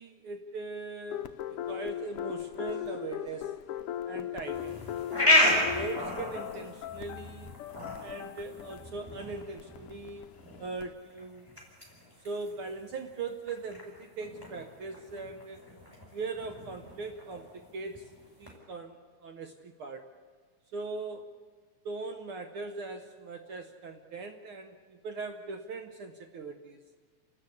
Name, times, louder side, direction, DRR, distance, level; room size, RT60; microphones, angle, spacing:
voice 1, 0.0-3.7 4.1-4.9 5.5-7.5 8.0-10.3 10.6-11.5 12.2-15.7 16.1-18.1 18.4-20.0 20.7-21.3 21.8-26.8, right 3 dB, 65° right, 6 dB, 1.4 m, -40 dB
sound 1, 1.1-10.9, left 11 dB, 85° left, 1.2 m, -39 dB
sound 2, 4.5-18.5, left 1 dB, 5° right, 5.0 m, -33 dB
29.0 x 13.0 x 8.4 m, 1.5 s
omnidirectional pair, 3.4 m